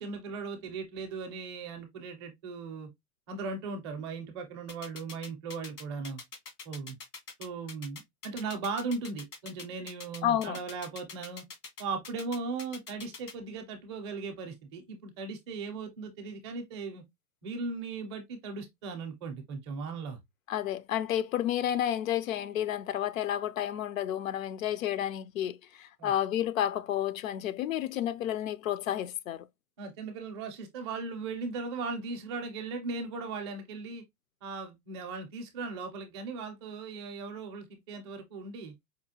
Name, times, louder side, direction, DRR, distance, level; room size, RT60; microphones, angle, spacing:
voice 1, 0.0-2.9 3.3-6.2 6.6-7.0 7.4-11.4 11.8-17.0 17.4-20.2 26.0-26.1 29.8-34.0 34.4-38.7, right 4 dB, 20° right, 0.4 m, -38 dB
sound 1, 4.7-13.3, left 4 dB, 80° left, 2.0 m, -44 dB
voice 2, 10.2-10.6 20.5-29.5, left 11 dB, 60° left, 0.5 m, -31 dB
4.9 x 2.3 x 2.7 m
hypercardioid pair, 145°, 47 cm